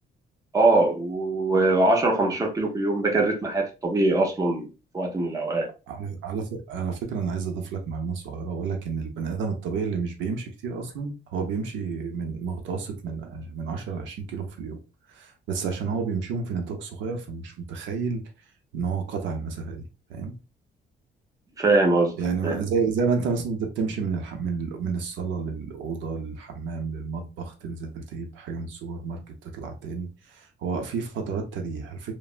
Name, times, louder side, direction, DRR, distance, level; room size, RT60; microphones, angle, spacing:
voice 1, 0.5-4.7 4.9-5.7 21.6-22.2 22.4-22.6, right 2 dB, 20° right, 0.6 m, -22 dB
voice 2, 5.9-14.8 15.1-18.2 18.7-20.3 22.2-32.1, right 5 dB, 90° right, 0.7 m, -30 dB
3.2 x 2.0 x 2.4 m
cardioid pair, 145°, 19 cm